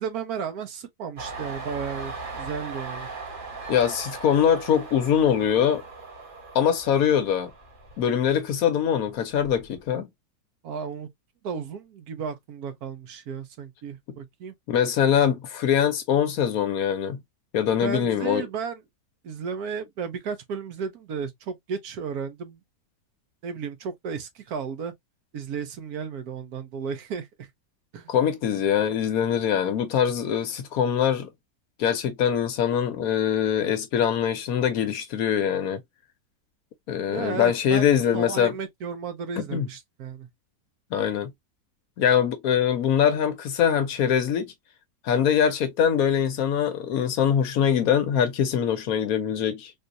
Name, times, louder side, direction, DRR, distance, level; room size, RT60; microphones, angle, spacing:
voice 1, 0.0-3.1 10.6-11.1 11.4-14.5 17.8-18.8 19.2-22.6 23.4-24.9 25.3-27.5 27.9-28.1 37.1-37.8 38.1-40.3, right 6 dB, 70° right, 1.2 m, -34 dB
Train, 1.2-8.6 9.0-9.8, right 3 dB, 35° right, 1.3 m, -39 dB
voice 2, 3.7-5.8 6.5-7.5 8.0-10.1 14.7-17.2 17.5-18.5 28.1-31.3 31.8-35.8 36.9-38.5 39.4-39.7 40.9-41.3 42.0-44.5 45.0-49.7, left 8 dB, 70° left, 1.0 m, -23 dB
3.7 x 2.7 x 2.5 m
omnidirectional pair, 1.8 m